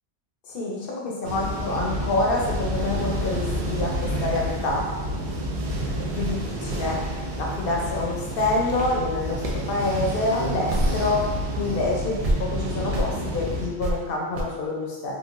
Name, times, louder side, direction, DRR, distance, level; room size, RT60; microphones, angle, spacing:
voice 1, 0.5-4.8 6.1-7.0 7.3-11.3 11.6-15.1, left 2 dB, 60° left, -2 dB, 0.9 m, -27 dB
sound 1, 1.2-13.7, equal, 80° right, 0.9 m, -29 dB
sound 2, 7.5-11.3 11.6-11.7 12.2-12.4 12.9-13.1 13.8-13.9 14.3-14.4, right 1 dB, 50° right, 0.4 m, -29 dB
3.8 x 2.5 x 2.5 m, 1.2 s
omnidirectional pair, 1.1 m